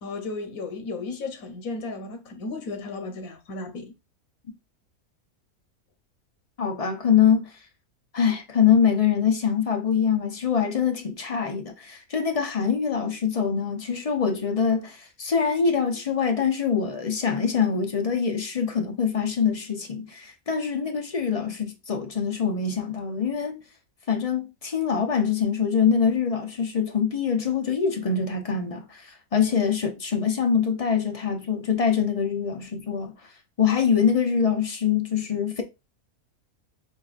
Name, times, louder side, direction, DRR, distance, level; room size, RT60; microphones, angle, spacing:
voice 1, 0.0-3.9, left 3 dB, 80° left, 1.4 m, -34 dB
voice 2, 6.6-7.5 8.1-23.6 24.1-33.3 33.6-35.6, left 7 dB, 45° left, 0.4 m, -24 dB
7.3 x 2.6 x 2.4 m
omnidirectional pair, 1.5 m